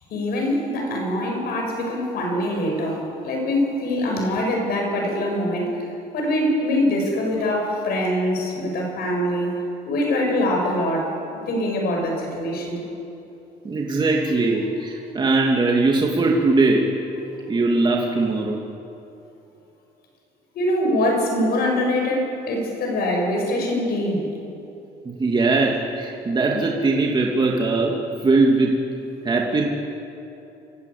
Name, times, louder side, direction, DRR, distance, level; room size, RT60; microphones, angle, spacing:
voice 1, 0.1-5.8 6.1-9.5 9.9-11.1 11.5-12.8 20.5-24.3, left 1 dB, 65° left, 1 dB, 7.1 m, -23 dB
voice 2, 13.6-16.9 17.5-18.6 25.0-28.0 28.2-28.9 29.2-29.6, right 3 dB, 25° right, -1 dB, 2.6 m, -20 dB
27.0 x 16.5 x 8.6 m, 2.9 s
cardioid pair, 110°, 17 cm